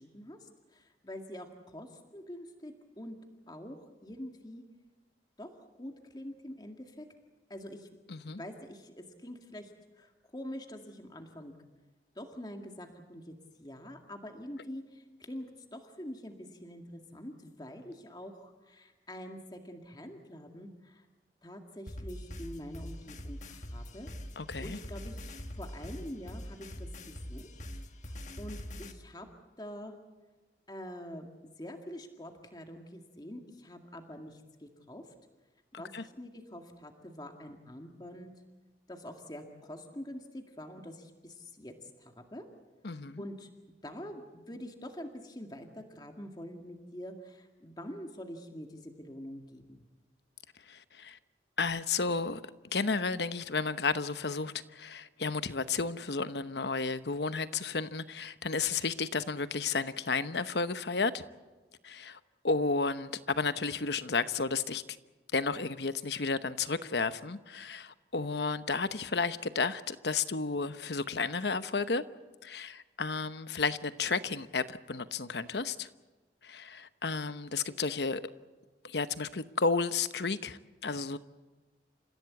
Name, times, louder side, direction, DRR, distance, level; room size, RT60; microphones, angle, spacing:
voice 1, 0.0-3.2 3.5-4.6 5.4-5.5 5.8-7.1 7.5-7.9 8.2-9.7 10.0-11.5 12.2-13.3 13.6-21.1 21.4-24.1 24.6-27.5 28.1-29.3 29.6-30.0 30.7-35.0 35.8-38.3 38.9-42.5 43.2-43.5 43.8-49.9, equal, 25° left, 2.0 m, -45 dB
voice 2, 8.1-8.4 24.4-24.8 35.9-36.0 42.8-43.2 50.7-51.2 51.6-52.4 52.7-61.2 61.8-62.2 62.4-64.8 65.3-72.0 72.4-75.9 76.4-78.2 78.8-81.2, left 4 dB, 75° left, 1.0 m, -32 dB
sound 1, 21.9-28.9, left 1 dB, 40° left, 1.5 m, -43 dB
29.5 x 16.0 x 8.4 m
head